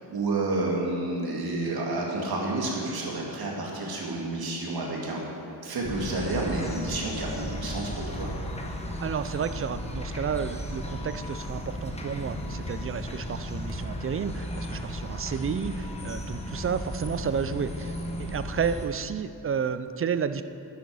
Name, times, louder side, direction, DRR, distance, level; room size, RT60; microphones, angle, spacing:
voice 1, 0.1-5.2 5.6-8.3, right 2 dB, 65° right, -2 dB, 2.3 m, -30 dB
sound 1, 5.8-18.9, equal, 15° left, 1.1 m, -35 dB
voice 2, 9.0-20.4, right 7 dB, 35° right, 12 dB, 0.4 m, -31 dB
10.0 x 8.2 x 6.2 m, 2.7 s
cardioid pair, 105°, 40 cm